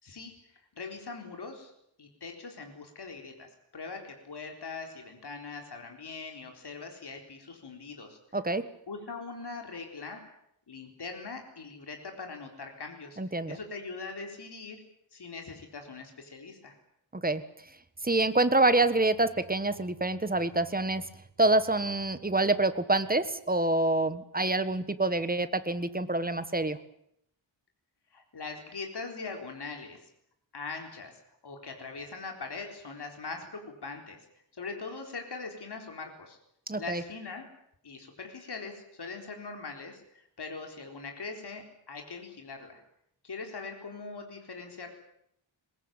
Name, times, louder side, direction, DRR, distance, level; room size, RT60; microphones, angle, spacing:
voice 1, 0.0-1.7 2.0-8.2 8.9-10.2 10.7-14.8 15.1-16.7 28.1-30.1 30.5-34.2 34.5-36.4 36.8-37.4 37.8-42.8 43.2-44.9, left 4 dB, 55° left, 3 dB, 4.1 m, -41 dB
voice 2, 8.3-8.7 13.2-13.6 17.1-17.4 18.0-21.1 21.4-26.8 36.7-37.0, right 2 dB, 20° right, 12 dB, 1.5 m, -26 dB
22.5 x 21.0 x 9.0 m, 0.74 s
wide cardioid pair, 120°, 48 cm